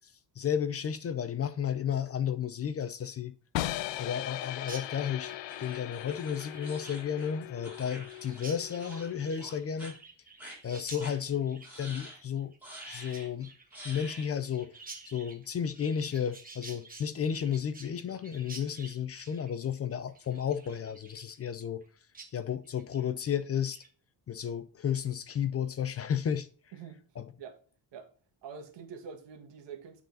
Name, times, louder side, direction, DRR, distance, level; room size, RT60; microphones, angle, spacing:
voice 1, 0.4-3.3 4.0-10.0 10.6-12.5 12.9-13.5 13.8-14.8 15.1-21.8 22.3-23.8 24.3-26.5 27.2-27.3, left 8 dB, 35° left, 0.5 m, -33 dB
sound 1, 3.5-9.5, left 15 dB, 90° left, 0.6 m, -39 dB
Chirp tweet, 4.6-21.9 22.1-22.3 22.6-23.0 23.4-23.9, right 3 dB, 20° right, 1.2 m, -51 dB
sound 2, 5.5-8.5 8.8-9.1 9.4-9.9 10.4-10.6 11.0-11.2 11.6-12.2 12.6-13.3 13.7-14.3, equal, 5° right, 3.0 m, -48 dB
voice 2, 26.7-27.6 27.9-28.1 28.4-30.0, right 6 dB, 75° right, 1.7 m, -46 dB
9.0 x 4.1 x 3.9 m
cardioid pair, 170°, 43 cm